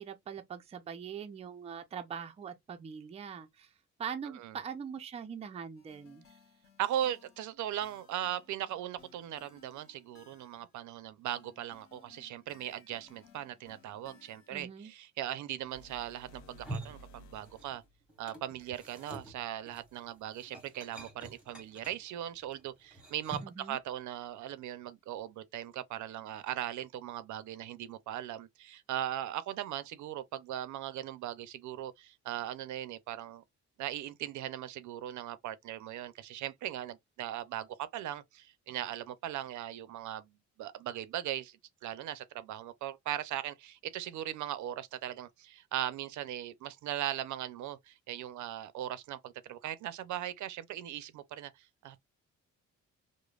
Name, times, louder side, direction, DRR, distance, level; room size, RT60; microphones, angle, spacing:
voice 1, 0.0-3.7 4.0-6.2 14.5-14.9 23.4-23.8, right 7 dB, 20° right, 0.4 m, -42 dB
voice 2, 4.3-4.6 6.8-17.8 18.2-33.4 33.8-41.6 41.8-52.0, right 12 dB, 75° right, 0.5 m, -39 dB
sound 1, 5.8-10.8 11.3-14.6, left 6 dB, 45° left, 0.9 m, -62 dB
sound 2, 15.6-18.0, equal, 65° left, 0.6 m, -55 dB
sound 3, 16.4-17.8 18.1-23.7, right 1 dB, 5° right, 0.9 m, -47 dB
5.0 x 2.0 x 2.3 m
cardioid pair, 180°, 30 cm